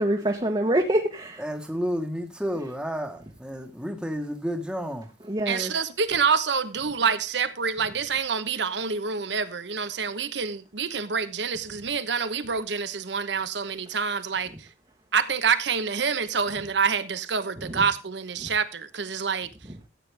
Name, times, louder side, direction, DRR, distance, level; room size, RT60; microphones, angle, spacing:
voice 1, 0.0-1.4 5.3-5.7 17.7-17.8 18.4-18.5, right 1 dB, 25° right, 1.1 m, -25 dB
voice 2, 1.4-5.1, equal, 5° right, 1.3 m, -31 dB
voice 3, 5.5-14.7 15.1-19.5, right 5 dB, 80° right, 1.0 m, -27 dB
14.0 x 8.6 x 3.4 m
head